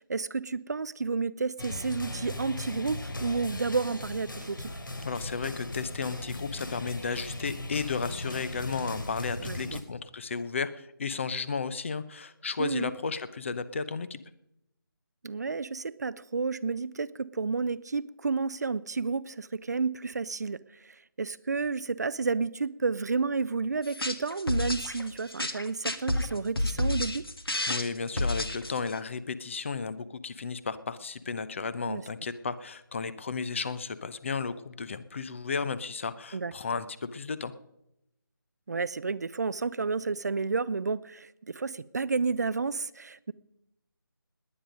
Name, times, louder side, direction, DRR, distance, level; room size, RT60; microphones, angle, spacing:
voice 1, 0.0-4.7 9.4-9.8 12.6-12.9 15.2-27.3 31.9-32.0 36.3-36.5 38.7-43.3, right 4 dB, 50° right, 0.5 m, -31 dB
sound 1, 1.6-9.8, left 2 dB, 65° left, 3.1 m, -38 dB
voice 2, 5.0-14.2 27.7-37.5, left 5 dB, 35° left, 0.8 m, -34 dB
sound 2, 23.8-29.0, left 1 dB, 85° left, 1.8 m, -30 dB
20.0 x 9.3 x 5.2 m
figure-of-eight pair, 160°, 12 cm